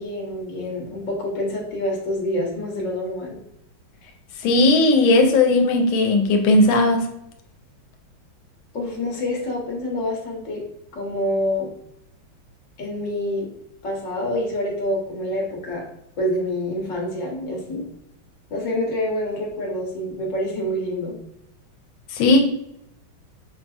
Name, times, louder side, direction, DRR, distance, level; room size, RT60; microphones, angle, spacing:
voice 1, 0.0-3.4 8.7-10.6 10.9-11.7 12.8-13.5 13.8-15.8 16.2-17.8 18.5-21.2, left 1 dB, 45° left, 1.2 m, -27 dB
voice 2, 4.4-7.1 22.1-22.4, left 2 dB, 85° left, 1.4 m, -16 dB
5.4 x 2.6 x 2.3 m
omnidirectional pair, 2.2 m